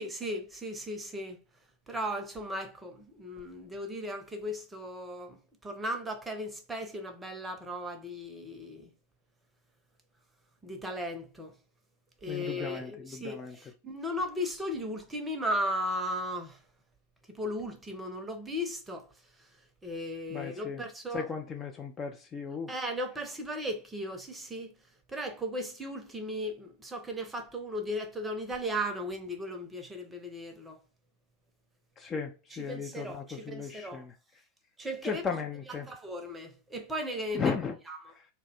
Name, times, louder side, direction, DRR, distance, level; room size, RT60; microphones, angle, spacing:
voice 1, 0.0-1.4 1.9-8.9 10.6-11.5 12.2-16.6 17.3-19.1 19.8-21.2 22.7-24.7 25.1-30.8 32.5-34.1 34.8-35.2 35.9-37.5 37.9-38.0, equal, 10° right, 0.7 m, -36 dB
voice 2, 12.3-13.6 20.3-20.8 21.1-22.8 32.0-34.1 35.0-35.9 37.3-37.8 38.1-38.3, left 5 dB, 20° left, 0.4 m, -36 dB
2.6 x 2.2 x 4.0 m
figure-of-eight pair, 90°, 0 cm